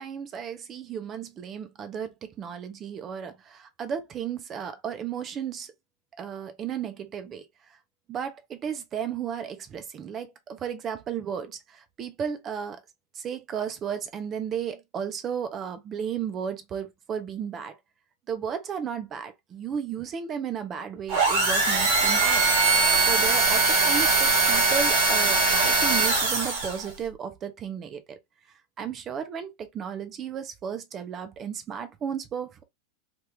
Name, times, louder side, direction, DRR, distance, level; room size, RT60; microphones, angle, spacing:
voice 1, 0.0-5.7 6.2-7.4 8.1-12.8 13.2-17.7 18.3-22.5 22.8-28.2 28.8-32.6, right 8 dB, 25° right, 0.6 m, -34 dB
sound 1, 21.1-26.9, right 3 dB, 50° right, 1.4 m, -21 dB
3.0 x 2.4 x 3.3 m
supercardioid pair, 160°, 0 cm